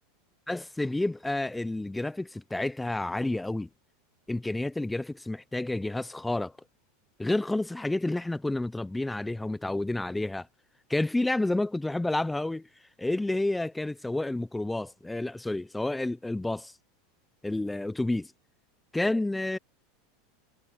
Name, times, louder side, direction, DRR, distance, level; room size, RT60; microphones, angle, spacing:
voice 1, 0.5-3.7 4.3-6.5 7.2-10.5 10.9-12.7 13.0-16.7 17.4-18.3 18.9-19.6, left 2 dB, 5° left, 0.5 m, -30 dB
supercardioid pair, 125°, 0 cm